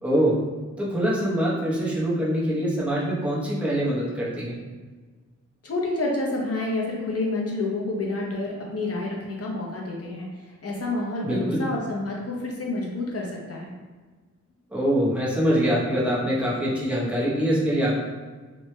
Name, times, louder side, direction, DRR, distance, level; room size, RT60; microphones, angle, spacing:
voice 1, 0.0-0.4 0.8-4.6 11.2-11.6 14.7-18.0, equal, 5° right, -6 dB, 0.7 m, -24 dB
voice 2, 5.6-13.7, left 2 dB, 55° left, -2 dB, 0.7 m, -29 dB
3.1 x 2.2 x 3.1 m, 1.4 s
wide cardioid pair, 120°, 29 cm